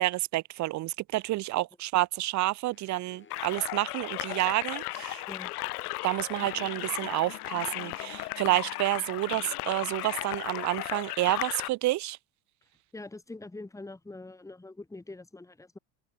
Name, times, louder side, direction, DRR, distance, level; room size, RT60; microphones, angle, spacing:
voice 1, 0.0-5.2 6.0-12.2, right 17 dB, 40° right, 0.6 m, -29 dB
sound 1, 2.7-8.9, left 6 dB, 25° left, 3.2 m, -55 dB
sound 2, 3.3-11.7, left 19 dB, 85° left, 0.8 m, -36 dB
sound 3, 6.4-11.3, left 14 dB, 50° left, 3.7 m, -50 dB
voice 2, 12.9-15.8, left 2 dB, 5° left, 1.4 m, -44 dB
hypercardioid pair, 85°, 44 cm